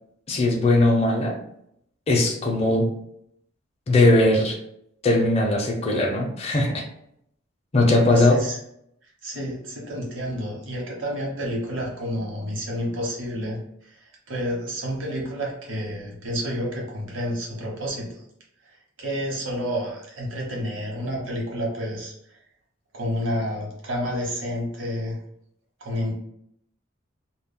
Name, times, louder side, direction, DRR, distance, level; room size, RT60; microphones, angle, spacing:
voice 1, 0.3-1.4 2.1-2.9 3.9-4.6 5.0-6.8 7.7-8.4, left 2 dB, 30° left, 0 dB, 0.5 m, -19 dB
voice 2, 8.0-8.6 9.2-18.2 19.0-22.1 22.9-25.2 25.8-26.1, equal, 70° right, -2 dB, 0.8 m, -30 dB
2.2 x 2.1 x 3.6 m, 0.73 s
head